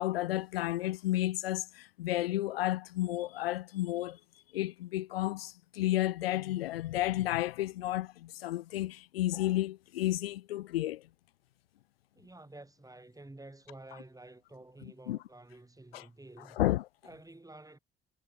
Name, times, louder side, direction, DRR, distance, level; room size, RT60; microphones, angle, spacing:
voice 1, 0.0-4.2 4.5-11.0 15.1-15.2 15.9-16.1 16.6-16.9, left 15 dB, 75° left, 0.9 m, -32 dB
voice 2, 12.1-16.6 17.0-17.8, right 2 dB, 10° right, 6.7 m, -51 dB
figure-of-eight pair, 50°, 30 cm